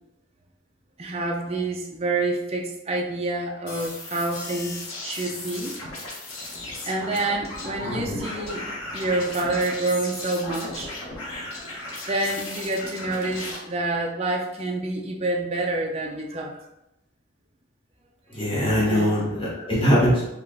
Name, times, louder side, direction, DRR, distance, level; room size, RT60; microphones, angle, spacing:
voice 1, 1.0-5.7 6.8-8.6 8.9-10.9 12.1-16.5 18.9-19.3, right 2 dB, 30° right, 0 dB, 0.6 m, -27 dB
sound 1, 3.7-13.6, left 2 dB, 80° left, 1.2 m, -36 dB
voice 2, 7.8-8.3 18.3-20.2, equal, 25° left, -6 dB, 1.0 m, -22 dB
4.8 x 2.6 x 3.7 m, 0.89 s
head